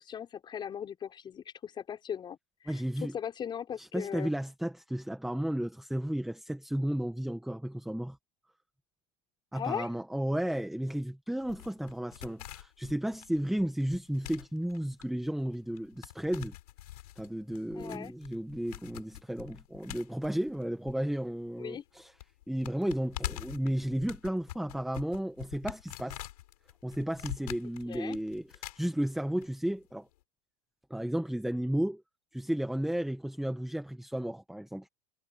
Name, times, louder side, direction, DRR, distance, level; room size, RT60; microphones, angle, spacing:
voice 1, 0.0-2.4 2.6-4.3 9.5-9.9 17.7-18.1 21.6-21.8 27.9-28.2, left 8 dB, 25° left, 5.6 m, -38 dB
voice 2, 2.7-3.1 3.8-8.2 9.5-16.5 17.2-22.1 22.5-26.2 26.8-30.1 30.9-32.0 32.3-34.9, right 1 dB, ahead, 1.5 m, -33 dB
sound 1, 11.4-21.5 21.7-21.8 22.2-29.5 29.7-29.8, left 14 dB, 75° left, 7.2 m, -45 dB
supercardioid pair, 140°, 20 cm